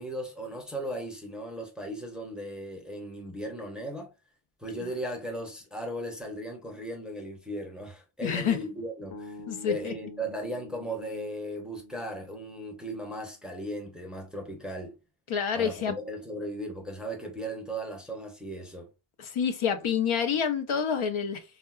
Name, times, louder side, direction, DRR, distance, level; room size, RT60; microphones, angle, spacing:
voice 1, 0.0-4.1 4.6-9.4 9.7-15.0 15.5-18.9, right 1 dB, ahead, 0.6 m, -37 dB
voice 2, 8.2-8.6 9.5-9.9 15.3-16.0 19.2-21.4, left 7 dB, 80° left, 0.6 m, -28 dB
sound 1, 9.1-13.3, left 2 dB, 45° left, 0.7 m, -47 dB
3.6 x 2.2 x 2.3 m
wide cardioid pair, 130°, 49 cm